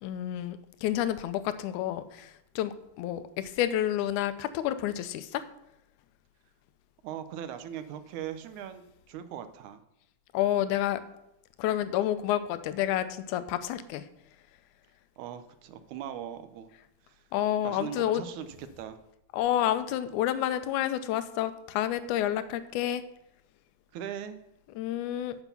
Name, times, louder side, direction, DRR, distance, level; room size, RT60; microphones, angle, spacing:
voice 1, 0.0-5.4 10.3-11.0 11.6-14.1 17.3-18.2 19.3-23.0 24.8-25.4, left 12 dB, 80° left, 12 dB, 2.1 m, -29 dB
voice 2, 7.0-9.8 15.2-16.7 17.1-17.2 17.6-19.0 23.9-24.4, right 9 dB, 75° right, 10 dB, 2.0 m, -40 dB
8.1 x 5.8 x 6.9 m, 0.84 s
omnidirectional pair, 3.6 m